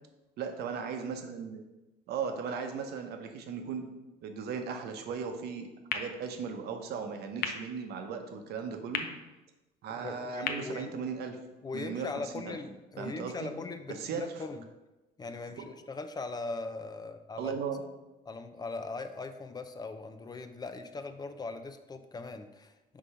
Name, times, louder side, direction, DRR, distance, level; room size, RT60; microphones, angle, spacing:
voice 1, 0.4-1.7 2.1-3.9 4.2-9.1 9.8-11.4 11.7-12.6 13.0-13.5 13.9-14.2 15.6-15.7 17.4-17.8, right 6 dB, 75° right, 5 dB, 0.9 m, -37 dB
sound 1, 5.9-11.8, left 6 dB, 70° left, 0.7 m, -41 dB
voice 2, 10.0-10.9 11.6-14.6 15.2-17.5 18.3-23.0, left 3 dB, 25° left, 9 dB, 0.5 m, -40 dB
4.8 x 3.8 x 5.6 m, 1.0 s
cardioid pair, 110°, 17 cm